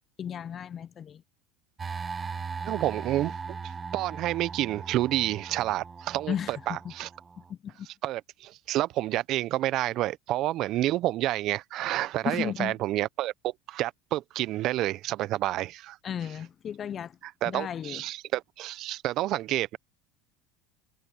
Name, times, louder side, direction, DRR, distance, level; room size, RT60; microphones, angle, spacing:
voice 1, 0.2-1.2 6.3-6.9 7.5-7.9 12.2-12.7 16.0-17.2 17.4-18.0, left 9 dB, 40° left, 0.6 m, -34 dB
sound 1, 1.8-7.5, right 5 dB, 25° right, 1.7 m, -39 dB
voice 2, 2.6-3.3 3.9-7.1 8.0-16.0 17.2-19.8, right 15 dB, 55° right, 0.9 m, -29 dB
hypercardioid pair, 90°, 0 cm